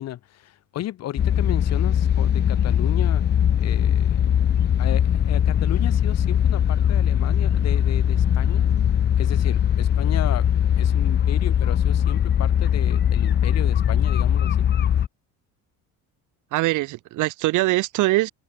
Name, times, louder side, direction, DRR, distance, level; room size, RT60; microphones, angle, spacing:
voice 1, 0.0-3.2 3.6-4.3 4.8-8.7 9.2-10.5 10.8-14.7, left 13 dB, 50° left, 7.6 m, -34 dB
sound 1, 1.2-15.1, left 9 dB, 30° left, 1.3 m, -20 dB
voice 2, 16.5-18.3, right 19 dB, 65° right, 2.7 m, -22 dB
cardioid pair, 150°, 32 cm